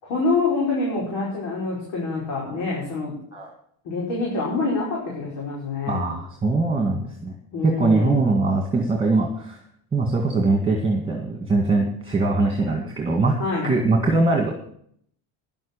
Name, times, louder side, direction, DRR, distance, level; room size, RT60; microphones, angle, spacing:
voice 1, 0.0-3.1 3.9-6.1 7.5-8.2 13.4-13.8, left 3 dB, 75° left, -4 dB, 5.3 m, -26 dB
voice 2, 5.9-7.3 7.6-9.6 9.9-13.4 13.6-14.5, right 3 dB, 10° right, 1 dB, 2.0 m, -22 dB
11.0 x 7.4 x 8.6 m, 0.64 s
cardioid pair, 140°, 46 cm